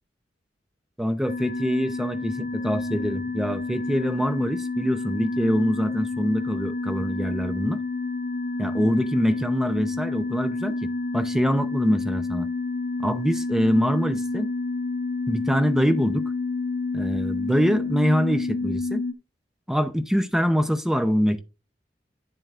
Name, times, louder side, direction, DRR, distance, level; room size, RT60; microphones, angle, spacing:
voice 1, 1.0-7.8 8.6-12.5 13.0-14.5 15.3-16.3 16.9-19.0 19.7-21.4, equal, 5° right, 0.6 m, -24 dB
sound 1, 1.2-19.1, left 3 dB, 50° left, 0.8 m, -29 dB
10.0 x 7.5 x 2.5 m
head